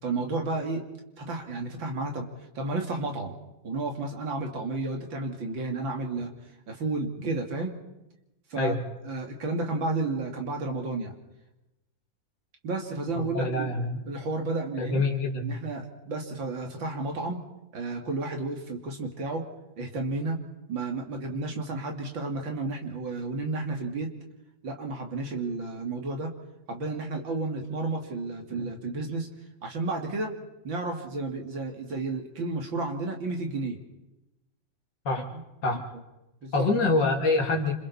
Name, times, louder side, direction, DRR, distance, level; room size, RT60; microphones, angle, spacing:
voice 1, 0.0-0.8 1.2-2.3 2.5-3.4 3.6-6.3 6.7-7.8 8.5-8.8 9.0-11.1 12.6-13.7 14.1-15.1 15.4-17.4 17.7-19.4 19.8-20.4 20.7-24.1 24.6-26.3 26.7-29.3 29.6-30.3 30.6-33.8 36.4-36.7, right 3 dB, 80° right, 2 dB, 3.2 m, -32 dB
voice 2, 13.2-14.0 14.8-15.6 35.0-35.2 35.6-35.8 36.5-37.7, left 2 dB, 70° left, 1 dB, 3.2 m, -25 dB
28.0 x 27.5 x 4.2 m, 0.94 s
omnidirectional pair, 2.1 m